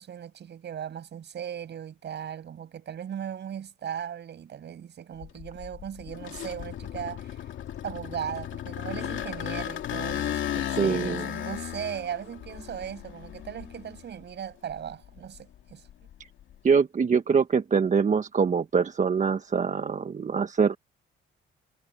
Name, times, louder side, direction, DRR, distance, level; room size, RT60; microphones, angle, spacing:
voice 1, 0.0-7.4 7.8-15.8, right 9 dB, 60° right, 7.8 m, -38 dB
sound 1, 5.2-14.2 14.7-16.5, left 11 dB, 75° left, 2.5 m, -35 dB
voice 2, 10.8-11.2 16.6-20.8, right 6 dB, 40° right, 1.2 m, -24 dB
cardioid pair, 90°, 20 cm